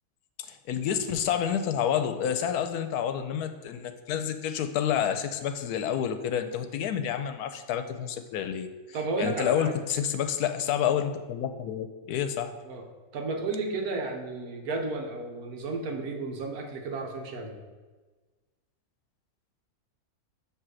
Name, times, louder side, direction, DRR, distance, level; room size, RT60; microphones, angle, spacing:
voice 1, 0.4-8.7 9.2-12.5, left 9 dB, 90° left, 8 dB, 1.1 m, -29 dB
voice 2, 8.9-9.7 12.6-12.8 13.1-17.6, right 3 dB, 75° right, 3 dB, 1.4 m, -33 dB
7.5 x 3.2 x 6.2 m, 1.3 s
omnidirectional pair, 1.6 m